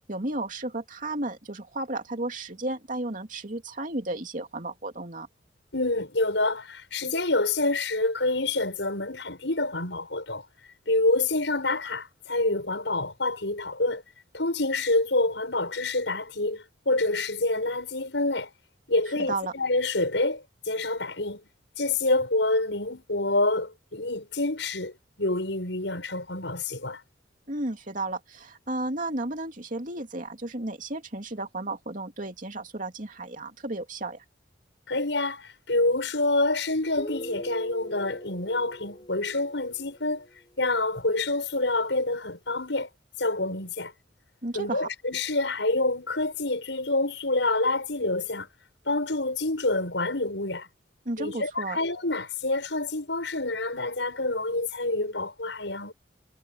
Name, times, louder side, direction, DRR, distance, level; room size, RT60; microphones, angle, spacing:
voice 1, 0.0-5.3 19.3-19.5 27.5-34.2 44.4-44.9 51.0-51.8, right 2 dB, 45° right, 2.9 m, -33 dB
voice 2, 5.7-10.4 10.9-14.0 14.3-18.5 18.9-21.4 21.8-24.9 25.2-27.0 34.9-40.3 40.6-42.9 43.2-43.9 44.5-48.5 48.9-50.7 51.2-55.9, left 2 dB, 80° left, 7.0 m, -27 dB
Guitar, 37.0-40.5, left 1 dB, 25° left, 5.7 m, -42 dB
head